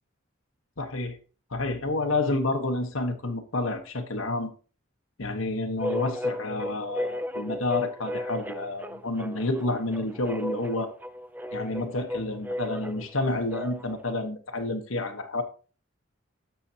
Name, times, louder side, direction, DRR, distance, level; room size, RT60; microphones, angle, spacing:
voice 1, 0.8-1.2 1.5-4.5 5.2-10.9 11.5-15.4, left 2 dB, 85° left, 1.3 m, -29 dB
sound 1, 5.8-14.0, left 1 dB, 10° right, 0.5 m, -35 dB
13.0 x 6.9 x 2.9 m
head